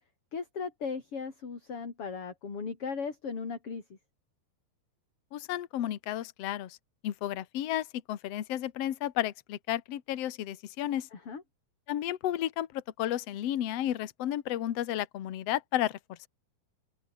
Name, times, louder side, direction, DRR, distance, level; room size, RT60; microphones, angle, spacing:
voice 1, 0.3-4.0 11.1-11.4, left 5 dB, 35° left, 4.4 m, -37 dB
voice 2, 5.3-6.8 7.0-11.1 11.9-16.3, left 12 dB, 75° left, 1.4 m, -32 dB
open air
omnidirectional pair, 5.0 m